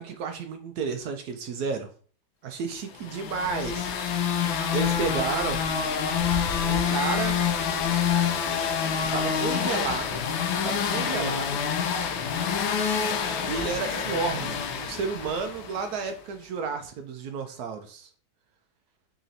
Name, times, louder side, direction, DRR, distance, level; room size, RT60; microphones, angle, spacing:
voice 1, 0.0-1.9 2.4-4.2 4.7-5.6 6.7-7.4 9.1-10.2 10.5-11.6 13.5-18.1, right 5 dB, 75° right, 6 dB, 0.9 m, -31 dB
sound 1, 3.0-15.9, left 7 dB, 85° left, 1.4 m, -27 dB
4.1 x 3.0 x 3.9 m, 0.43 s
omnidirectional pair, 2.1 m